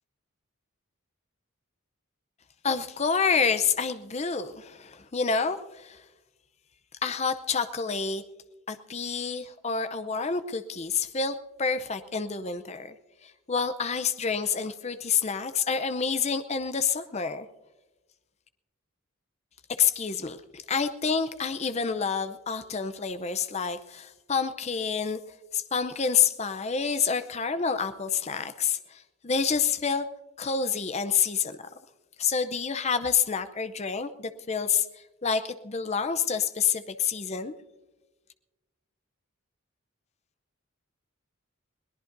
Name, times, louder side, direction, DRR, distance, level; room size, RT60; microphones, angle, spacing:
voice 1, 2.6-6.0 7.0-8.2 8.7-12.9 13.2-17.5 19.7-25.2 25.5-30.1 30.4-31.6 32.2-34.9 35.2-37.5, left 6 dB, 30° left, 11 dB, 0.6 m, -28 dB
22.0 x 18.0 x 2.6 m, 1.1 s
head